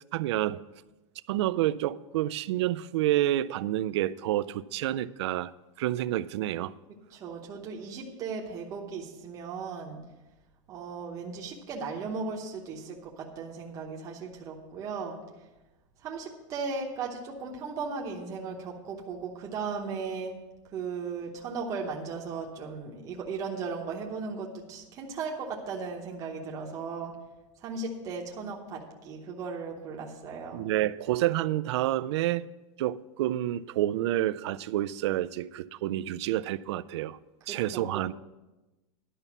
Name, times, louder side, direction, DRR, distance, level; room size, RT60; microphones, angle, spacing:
voice 1, 0.1-0.6 1.3-5.5 5.8-6.7 30.5-32.5 32.8-37.2 37.5-38.1, right 14 dB, 60° right, 0.4 m, -29 dB
voice 2, 7.1-10.0 10.7-15.2 16.0-20.3 20.7-27.1 27.6-30.6 37.5-38.0, right 4 dB, 20° right, 0.9 m, -36 dB
11.0 x 5.5 x 7.1 m
supercardioid pair, 175°, 16 cm